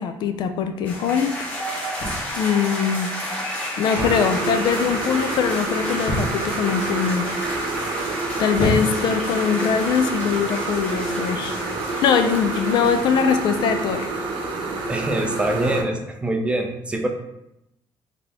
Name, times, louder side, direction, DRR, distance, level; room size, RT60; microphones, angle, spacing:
voice 1, 0.0-1.4 2.4-3.1 3.8-7.3 8.4-11.6 12.0-14.1, left 7 dB, 60° left, 7 dB, 0.4 m, -22 dB
sound 1, 0.8-14.1, equal, 15° left, 1.0 m, -31 dB
sound 2, 2.0-2.5 4.0-4.3 4.6-5.1 6.1-6.6 7.3-7.7 8.5-9.2 10.1-10.4, equal, 90° left, 1.4 m, -27 dB
sound 3, 4.0-15.8, right 3 dB, 70° right, 0.7 m, -28 dB
voice 2, 14.9-17.1, right 1 dB, 15° right, 3 dB, 0.4 m, -24 dB
4.0 x 2.8 x 3.5 m, 0.85 s
cardioid pair, 170°, 8 cm